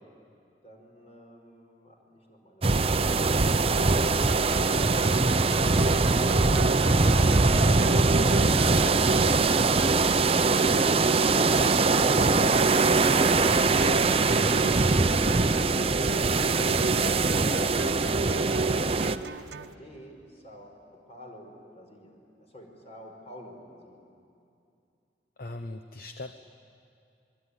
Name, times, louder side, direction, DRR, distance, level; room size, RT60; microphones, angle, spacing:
voice 1, 0.6-3.6 19.4-24.1, equal, 40° left, 1 dB, 5.3 m, -48 dB
sound 1, 2.6-19.2, right 3 dB, 35° right, 0.7 m, -22 dB
sound 2, 3.7-19.7, right 3 dB, 75° right, 0.8 m, -35 dB
Sliding door, 9.7-10.6 11.2-11.3 11.9-16.7, equal, 10° left, 6.2 m, -40 dB
voice 2, 25.4-26.4, left 2 dB, 55° left, 8 dB, 0.9 m, -39 dB
26.5 x 22.5 x 9.9 m, 2.5 s
head